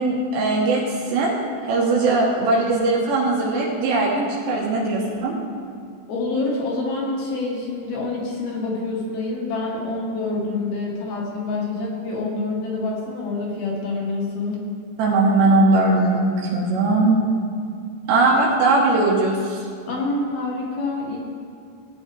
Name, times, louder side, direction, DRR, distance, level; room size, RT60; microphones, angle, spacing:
voice 1, 0.0-1.3 1.7-5.4 15.0-17.2 18.1-19.6, right 2 dB, 80° right, -4 dB, 3.4 m, -19 dB
voice 2, 6.1-14.6 19.9-21.2, left 3 dB, 65° left, -3 dB, 3.3 m, -27 dB
17.5 x 9.2 x 3.5 m, 2.4 s
omnidirectional pair, 5.1 m